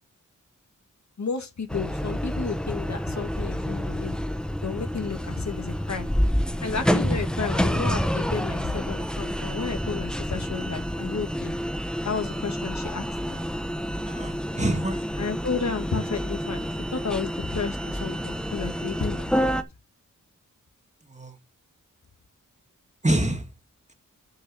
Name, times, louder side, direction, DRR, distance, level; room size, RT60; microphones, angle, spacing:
voice 1, 1.2-4.2 4.6-6.1 6.6-11.5 12.0-13.4 15.2-16.7 16.9-19.5, left 5 dB, 60° left, 1.9 m, -32 dB
sound 1, 1.7-19.6, equal, 5° left, 0.9 m, -28 dB
voice 2, 14.0-15.1 21.0-21.4 23.0-23.5, right 1 dB, 20° right, 2.0 m, -26 dB
7.0 x 6.3 x 6.3 m
wide cardioid pair, 90°, 32 cm